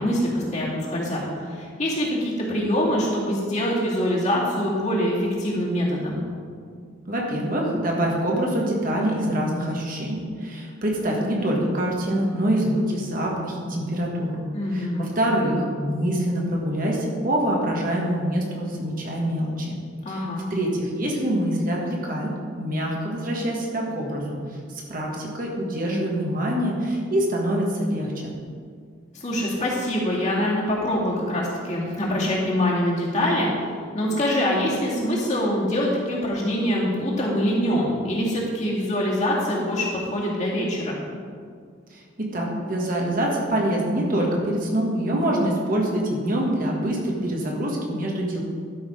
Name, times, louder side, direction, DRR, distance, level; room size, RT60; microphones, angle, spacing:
voice 1, 0.0-6.2 14.5-15.0 20.0-20.4 29.1-33.5 33.9-41.0, equal, 40° left, -5 dB, 2.3 m, -24 dB
voice 2, 7.1-14.4 14.7-19.8 20.1-28.3 41.9-48.4, right 1 dB, 45° right, -2 dB, 1.6 m, -25 dB
12.0 x 5.9 x 5.2 m, 2.1 s
head